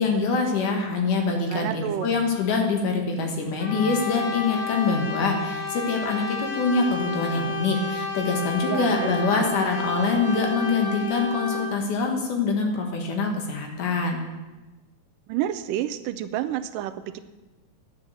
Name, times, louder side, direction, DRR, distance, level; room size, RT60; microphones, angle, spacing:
voice 1, 0.0-14.2, left 4 dB, 70° left, 3 dB, 3.0 m, -25 dB
voice 2, 1.5-2.1 8.7-9.5 15.3-17.2, right 11 dB, 85° right, 10 dB, 2.2 m, -29 dB
Brass instrument, 3.6-11.8, left 4 dB, 90° left, 3.1 m, -31 dB
10.5 x 8.8 x 6.8 m, 1.1 s
omnidirectional pair, 3.8 m